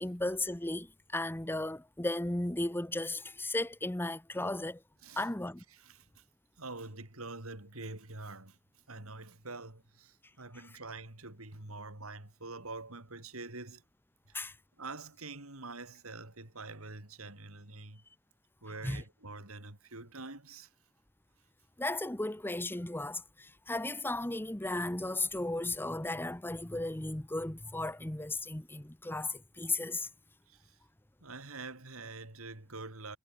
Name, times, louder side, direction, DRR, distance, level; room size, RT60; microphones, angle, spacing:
voice 1, 0.0-4.8 5.2-5.6 14.3-14.6 18.8-19.0 21.8-30.1, left 2 dB, 10° left, 0.9 m, -35 dB
voice 2, 5.7-6.2 6.6-8.6 8.9-13.8 14.3-14.5 14.8-18.0 18.6-20.7 30.5-30.8 31.2-33.2, right 3 dB, 75° right, 4.1 m, -46 dB
head